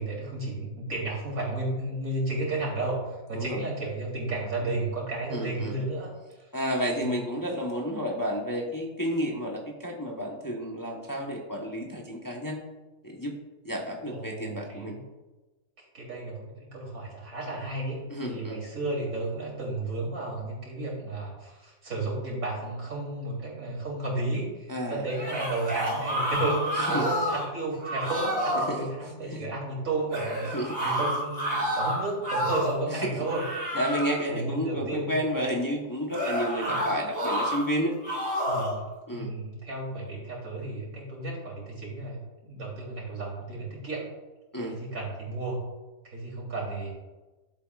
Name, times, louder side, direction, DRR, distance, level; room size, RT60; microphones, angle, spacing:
voice 1, 0.0-6.1 6.4-6.5 7.0-7.2 14.1-15.0 15.9-33.7 34.3-35.2 36.6-37.0 38.5-44.1 44.6-45.6 46.0-46.9, right 2 dB, 90° right, -4 dB, 3.7 m, -33 dB
voice 2, 3.3-3.6 5.3-5.8 6.5-12.6 13.0-13.4 13.6-15.0 18.1-18.6 24.7-25.0 26.8-27.1 28.5-28.8 29.2-29.5 30.5-30.8 32.9-33.1 33.7-37.9 39.1-39.3 44.5-44.8, equal, 15° left, -1 dB, 1.0 m, -31 dB
sound 1, 25.1-27.5 27.8-28.7 30.1-32.8 33.2-34.2 36.1-37.6 38.0-38.8, equal, 45° right, 2.9 m, -29 dB
12.5 x 7.9 x 2.4 m, 1.2 s
omnidirectional pair, 1.4 m